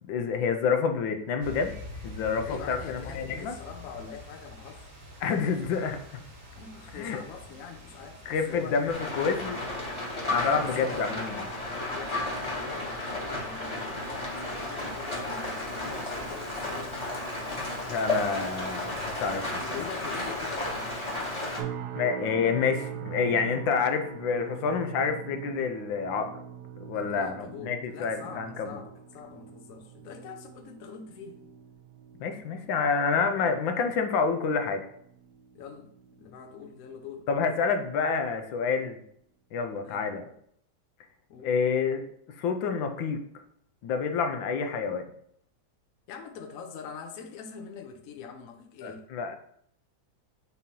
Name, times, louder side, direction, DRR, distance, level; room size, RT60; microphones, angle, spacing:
voice 1, 0.0-1.7 2.0-3.5 5.2-6.2 6.9-7.2 8.3-9.6 10.3-11.4 17.9-19.4 22.0-26.3 26.8-28.7 32.2-34.8 37.3-39.0 39.5-40.2 41.4-42.0 42.4-43.2 43.8-45.1 48.8-49.4, left 5 dB, 85° left, 6 dB, 1.5 m, -28 dB
gewitter berlin, 1.4-21.2, left 1 dB, 85° right, 3.0 m, -47 dB
voice 2, 2.4-4.9 6.5-8.2 8.5-8.8 10.3-11.1 11.9-13.0 13.4-17.0 19.3-20.9 26.9-31.4 35.5-37.3 39.8-40.1 41.3-41.5 46.1-49.1, left 6 dB, 60° left, 4 dB, 1.0 m, -43 dB
Rain, 8.9-21.6, left 2 dB, 20° left, 1.0 m, -33 dB
sound 1, 21.6-36.8 37.1-37.5 38.0-38.2, right 8 dB, 70° right, 1.0 m, -43 dB
6.3 x 2.9 x 5.3 m, 0.68 s
omnidirectional pair, 2.1 m